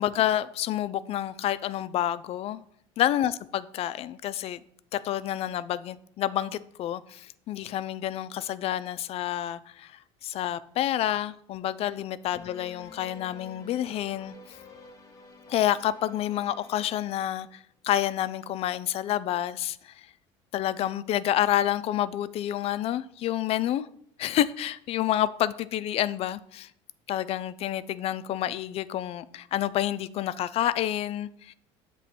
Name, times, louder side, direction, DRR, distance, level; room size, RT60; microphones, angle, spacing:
voice 1, 0.0-2.6 3.0-4.6 4.9-14.6 15.5-20.1 20.5-23.9 24.2-26.7 27.1-31.5, left 12 dB, 45° left, 0.3 m, -29 dB
sound 1, 12.3-17.4, left 2 dB, 25° left, 1.0 m, -50 dB
7.7 x 3.0 x 4.2 m
supercardioid pair, 95°, 14 cm